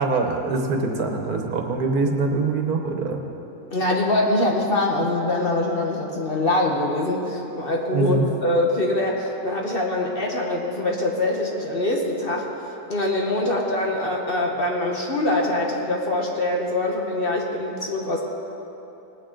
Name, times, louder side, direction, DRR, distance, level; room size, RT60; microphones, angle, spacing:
voice 1, 0.0-3.2 7.9-8.3, right 3 dB, 75° right, 3 dB, 1.6 m, -23 dB
voice 2, 3.7-12.5 12.9-18.2, left 1 dB, 40° left, 0 dB, 1.3 m, -23 dB
19.0 x 9.2 x 3.8 m, 3.0 s
omnidirectional pair, 1.6 m